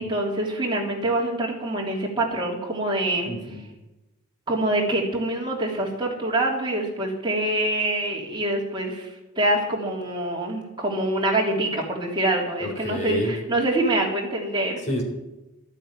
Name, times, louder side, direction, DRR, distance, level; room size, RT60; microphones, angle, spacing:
voice 1, 0.0-3.3 4.5-9.1 9.4-14.8, right 1 dB, 20° right, -2 dB, 3.2 m, -25 dB
voice 2, 3.3-3.7 12.6-13.3 14.9-15.0, left 1 dB, 35° left, 2 dB, 3.7 m, -29 dB
13.0 x 9.1 x 9.0 m, 1.0 s
head